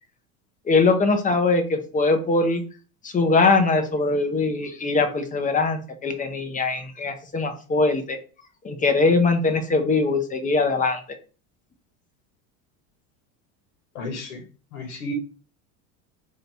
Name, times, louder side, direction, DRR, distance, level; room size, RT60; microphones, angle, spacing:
voice 1, 0.7-2.6 3.0-8.2 8.6-11.0, left 3 dB, 20° left, 7 dB, 0.6 m, -21 dB
voice 2, 13.9-14.4 14.7-15.1, left 2 dB, 85° left, 3 dB, 1.2 m, -33 dB
3.3 x 2.8 x 4.1 m, 0.37 s
supercardioid pair, 110°, 42 cm